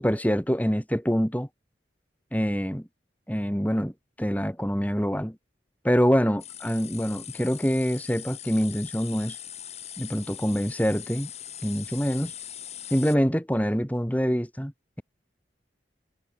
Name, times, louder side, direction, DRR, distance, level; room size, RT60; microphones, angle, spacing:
voice 1, 0.0-1.5 2.3-2.9 3.3-3.9 4.2-5.4 5.8-9.4 10.0-11.3 11.6-12.3 12.9-14.7, equal, 10° left, 6.5 m, -25 dB
sound 1, 6.4-13.2, left 10 dB, 35° left, 6.7 m, -41 dB
head